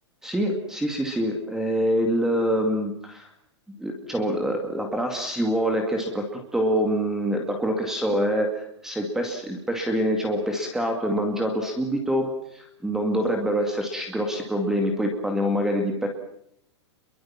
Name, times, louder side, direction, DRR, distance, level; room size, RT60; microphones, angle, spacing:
voice 1, 0.2-3.3 3.8-16.1, equal, 5° right, 3 dB, 2.3 m, -25 dB
28.5 x 22.5 x 7.4 m, 0.70 s
supercardioid pair, 175°, 15 cm